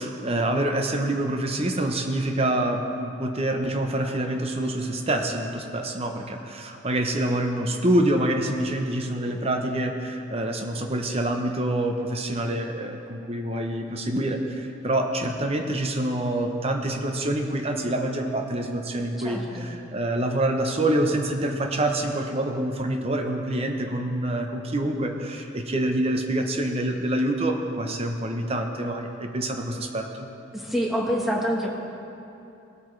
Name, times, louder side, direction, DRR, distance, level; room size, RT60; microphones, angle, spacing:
voice 1, 0.0-14.4 14.8-30.3, right 1 dB, 30° right, 4 dB, 0.8 m, -26 dB
voice 2, 19.2-19.7 30.5-31.7, equal, ahead, -3 dB, 1.2 m, -26 dB
17.5 x 8.5 x 3.3 m, 2.8 s
head